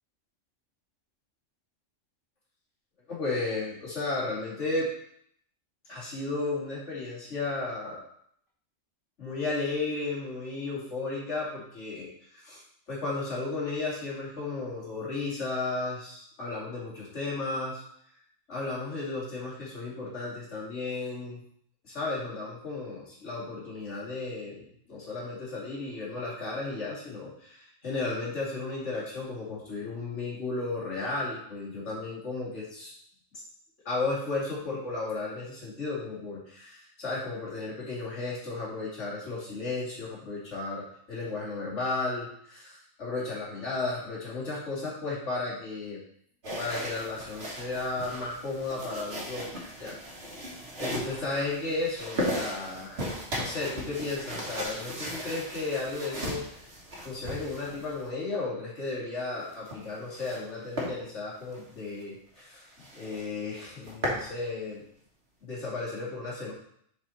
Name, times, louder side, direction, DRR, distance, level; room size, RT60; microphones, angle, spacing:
voice 1, 3.1-4.9 5.9-8.0 9.2-12.1 12.3-12.6 12.9-17.8 18.5-21.4 21.8-32.9 33.8-46.0 46.6-49.5 49.8-50.0 50.8-56.4 57.0-62.7 62.9-64.8 65.4-66.5, left 3 dB, 65° left, -6 dB, 2.7 m, -34 dB
sound 1, 46.4-58.1 59.4-60.4 60.8-60.9 61.4-61.6 62.0-62.1 62.4-62.5 62.8-63.2 63.6-64.3, equal, 55° right, 1.7 m, -36 dB
7.1 x 4.5 x 4.2 m, 0.68 s
omnidirectional pair, 1.3 m